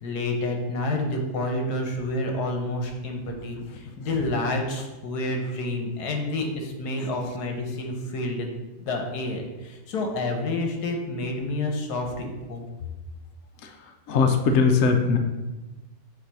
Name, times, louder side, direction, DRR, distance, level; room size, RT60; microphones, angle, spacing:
voice 1, 0.0-12.6, left 2 dB, 80° left, 3 dB, 1.4 m, -29 dB
voice 2, 13.6-15.2, left 5 dB, 65° left, 4 dB, 0.9 m, -22 dB
7.1 x 2.6 x 5.3 m, 1.1 s
omnidirectional pair, 1.7 m